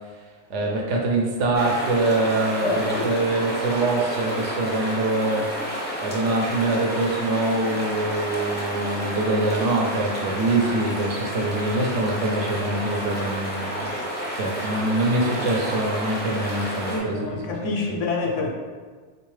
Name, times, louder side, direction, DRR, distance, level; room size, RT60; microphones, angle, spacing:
voice 1, 0.5-13.9 14.3-17.9, right 2 dB, 75° right, -1 dB, 1.0 m, -24 dB
sound 1, 1.5-17.0, equal, 15° left, 0.4 m, -30 dB
voice 2, 2.6-3.1 16.9-18.5, left 3 dB, 85° left, 0 dB, 1.0 m, -27 dB
3.5 x 2.6 x 3.2 m, 1.5 s
omnidirectional pair, 1.2 m